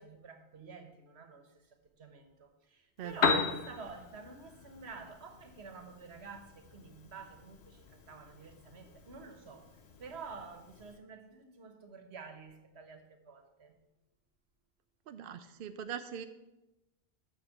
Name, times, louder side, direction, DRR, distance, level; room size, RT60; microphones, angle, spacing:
voice 1, 0.0-13.7, right 5 dB, 85° right, 6 dB, 1.4 m, -50 dB
Piano, 3.0-11.0, left 5 dB, 80° left, 1.2 m, -38 dB
voice 2, 3.0-3.4 15.1-16.3, right 8 dB, 65° right, 9 dB, 0.7 m, -41 dB
7.3 x 6.6 x 6.4 m, 1.0 s
omnidirectional pair, 1.1 m